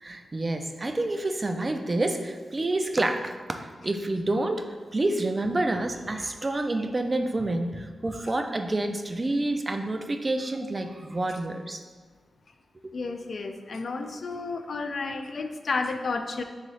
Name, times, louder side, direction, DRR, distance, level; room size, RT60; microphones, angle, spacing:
voice 1, 0.0-4.7 4.9-11.8, right 2 dB, 30° right, 6 dB, 0.3 m, -28 dB
voice 2, 12.9-16.4, left 3 dB, 60° left, 7 dB, 0.3 m, -31 dB
3.9 x 3.6 x 3.2 m, 1.5 s
wide cardioid pair, 95°, 0 cm